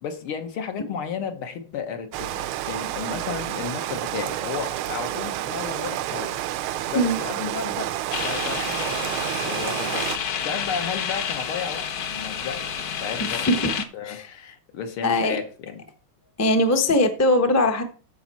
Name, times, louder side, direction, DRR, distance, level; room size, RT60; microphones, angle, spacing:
voice 1, 0.0-6.3 6.9-15.8, left 6 dB, 85° left, 6 dB, 2.2 m, -34 dB
Rain, 2.1-10.2, right 13 dB, 80° right, 1.4 m, -29 dB
sound 1, 8.1-13.8, left 7 dB, 55° left, 1.2 m, -29 dB
voice 2, 13.2-13.6 14.0-14.3 15.0-15.4 16.4-17.8, left 1 dB, 20° left, 6 dB, 0.4 m, -20 dB
13.5 x 5.4 x 4.2 m, 0.40 s
omnidirectional pair, 2.3 m